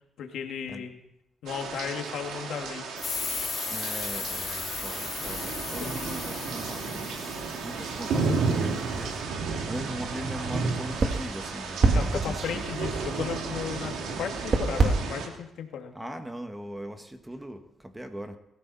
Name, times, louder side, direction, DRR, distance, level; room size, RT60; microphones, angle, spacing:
voice 1, 0.2-1.0 1.4-2.9 5.8-5.9 7.7-7.9 11.9-15.9, left 8 dB, 75° left, 4 dB, 2.1 m, -35 dB
sound 1, 1.5-15.3, right 4 dB, 80° right, 2.8 m, -33 dB
sound 2, 3.0-8.3, left 6 dB, 45° left, 4.0 m, -36 dB
voice 2, 3.7-12.7 16.0-18.4, equal, 10° right, 6 dB, 1.8 m, -40 dB
sound 3, 8.9-14.9, right 3 dB, 40° right, 2.4 m, -29 dB
21.5 x 15.0 x 4.3 m, 0.81 s
cardioid pair, 90°, 0 cm